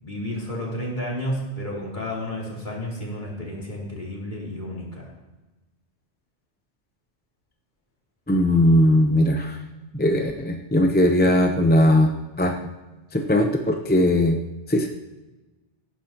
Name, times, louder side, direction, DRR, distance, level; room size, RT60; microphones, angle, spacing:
voice 1, 0.0-5.1, equal, 40° left, -5 dB, 3.5 m, -31 dB
voice 2, 8.3-9.6 9.9-12.1 12.4-12.5 13.1-14.4 14.7-14.9, left 1 dB, 10° left, 3 dB, 0.6 m, -19 dB
18.0 x 10.0 x 3.0 m, 1.1 s
omnidirectional pair, 1.2 m